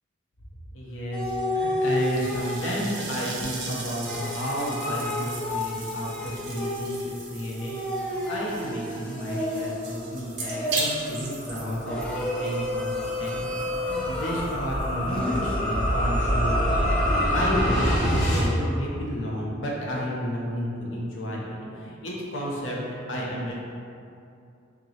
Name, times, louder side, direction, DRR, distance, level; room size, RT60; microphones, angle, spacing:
voice 1, 0.7-22.8 23.1-23.5, equal, 65° left, -5 dB, 0.8 m, -32 dB
sound 1, 1.1-2.8 4.0-7.1 7.6-9.9 10.5-11.2 11.8-14.6 15.1-18.6, left 1 dB, 5° left, 0.4 m, -31 dB
sound 2, 1.8-16.0, right 3 dB, 55° right, 0.6 m, -38 dB
sound 3, 10.6-18.5, equal, 35° left, 0.8 m, -26 dB
3.6 x 2.9 x 2.8 m, 2.6 s
head